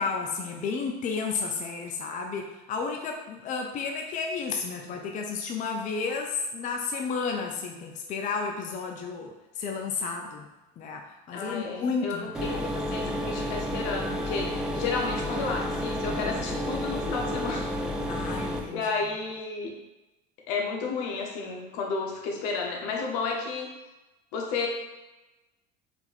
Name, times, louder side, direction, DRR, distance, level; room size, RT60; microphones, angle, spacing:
voice 1, 0.0-10.4 10.8-12.7 18.1-18.9, left 5 dB, 40° left, 3 dB, 0.5 m, -32 dB
voice 2, 11.3-17.7 18.1-19.7 20.5-23.7 24.3-24.7, left 4 dB, 80° left, 1 dB, 1.0 m, -32 dB
sound 1, 12.3-18.6, equal, 5° right, 0.6 m, -31 dB
4.4 x 2.6 x 4.1 m, 1.1 s
supercardioid pair, 105°, 21 cm